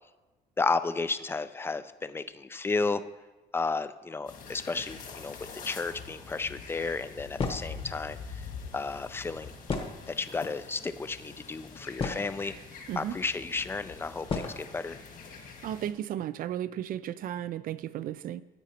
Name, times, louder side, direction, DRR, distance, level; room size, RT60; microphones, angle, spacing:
voice 1, 0.6-3.0 3.5-5.4 5.6-8.2 8.7-9.5 10.1-12.5 13.0-15.0, left 4 dB, 15° left, 12 dB, 0.4 m, -32 dB
sound 1, 4.3-15.9, left 5 dB, 55° left, 1.8 m, -45 dB
sound 2, 7.4-7.8 9.7-10.4 11.2-11.3 11.7-12.5 13.4-13.5 14.3-14.6, left 4 dB, 35° left, 1.1 m, -33 dB
voice 2, 15.6-18.4, right 11 dB, 55° right, 15 dB, 0.4 m, -34 dB
13.0 x 9.1 x 2.9 m, 1.2 s
cardioid pair, 110°, 17 cm